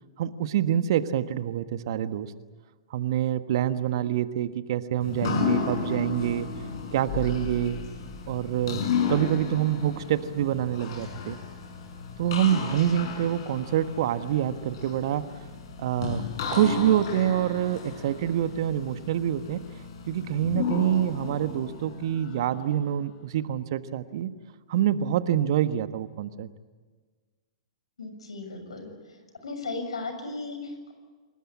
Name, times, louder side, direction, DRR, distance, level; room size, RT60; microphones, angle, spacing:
voice 1, 0.2-2.3 2.9-6.5 6.9-7.8 8.3-8.8 9.1-11.4 12.2-15.2 15.8-16.2 16.5-19.6 20.1-24.3 24.7-26.5, right 10 dB, 55° right, 11 dB, 1.4 m, -26 dB
sound 1, 5.0-22.8, left 6 dB, 55° left, 5.4 m, -34 dB
voice 2, 28.0-28.9 29.4-30.9, left 3 dB, 75° left, 7 dB, 6.8 m, -36 dB
28.0 x 20.0 x 8.7 m, 1.4 s
figure-of-eight pair, 115°, 3 cm